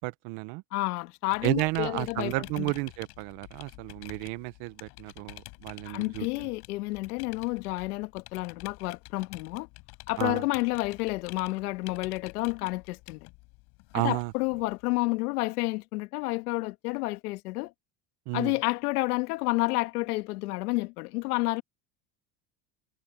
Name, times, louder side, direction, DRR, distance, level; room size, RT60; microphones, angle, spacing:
voice 1, 0.0-0.6 1.4-6.5 10.2-10.4 13.9-14.3 18.3-18.5, right 24 dB, 65° right, 1.1 m, -32 dB
voice 2, 0.7-2.7 5.9-9.7 10.1-13.3 13.9-17.7 18.3-21.6, left 22 dB, 90° left, 2.0 m, -30 dB
sound 1, 1.3-15.0, left 25 dB, 65° left, 5.1 m, -49 dB
supercardioid pair, 130°, 44 cm